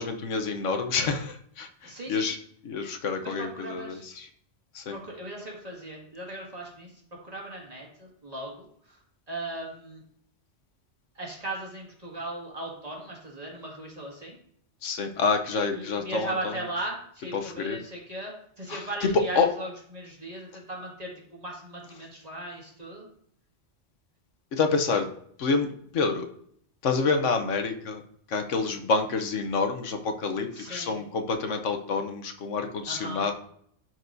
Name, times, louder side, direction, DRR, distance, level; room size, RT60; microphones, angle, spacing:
voice 1, 0.0-2.4 2.6-4.3 4.7-5.0 14.8-16.5 17.3-17.8 18.7-19.5 24.5-25.1 25.4-26.3 26.8-28.0 28.3-33.3, left 4 dB, 90° left, 5 dB, 1.2 m, -28 dB
voice 2, 1.8-2.3 3.2-4.0 4.9-9.0 9.3-10.0 11.2-14.4 15.7-23.1 30.5-31.0 32.9-33.3, right 1 dB, 30° right, -2 dB, 2.1 m, -38 dB
12.0 x 4.6 x 2.7 m, 0.65 s
omnidirectional pair, 1.2 m